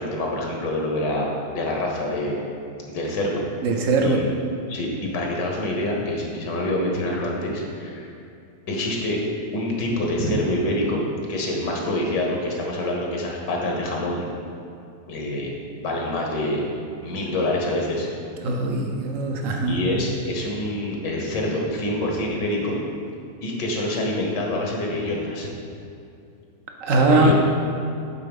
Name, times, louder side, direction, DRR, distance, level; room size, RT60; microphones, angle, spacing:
voice 1, 0.0-2.4 2.9-3.4 4.0-4.3 4.7-8.1 8.7-9.2 9.5-14.3 15.1-15.5 15.8-16.6 17.0-18.1 19.7-22.8 23.4-25.5 27.0-27.3, left 1 dB, 75° left, -1 dB, 1.8 m, -26 dB
voice 2, 3.6-4.2 18.4-19.8 26.8-27.3, right 2 dB, 60° right, 3 dB, 0.9 m, -20 dB
8.3 x 4.0 x 5.3 m, 2.6 s
omnidirectional pair, 1.9 m